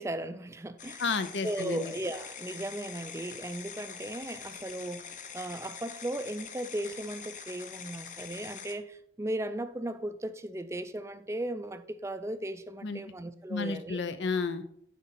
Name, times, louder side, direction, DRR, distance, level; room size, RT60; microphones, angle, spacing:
voice 1, 0.0-1.0 1.4-5.1 5.3-14.0, right 1 dB, 15° right, 0.4 m, -36 dB
sound 1, 0.8-8.7, left 7 dB, 45° left, 0.7 m, -44 dB
voice 2, 1.0-1.9 12.8-13.0 13.5-14.6, left 4 dB, 85° left, 0.7 m, -31 dB
10.0 x 4.0 x 4.2 m
head